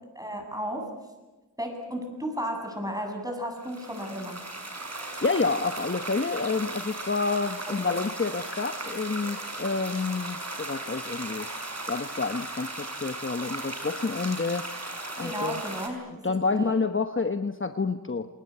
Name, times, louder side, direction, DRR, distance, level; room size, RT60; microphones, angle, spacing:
voice 1, 0.1-0.9 1.6-4.4 7.7-8.0 15.2-16.0 16.4-16.8, equal, 10° right, 3 dB, 8.0 m, -34 dB
sound 1, 3.6-15.9, right 2 dB, 45° right, 5.5 m, -37 dB
voice 2, 5.2-11.5 11.9-14.7 15.2-15.6 16.2-18.3, left 4 dB, 35° left, 8 dB, 1.1 m, -28 dB
28.5 x 20.5 x 8.6 m, 1.1 s
wide cardioid pair, 55°, 37 cm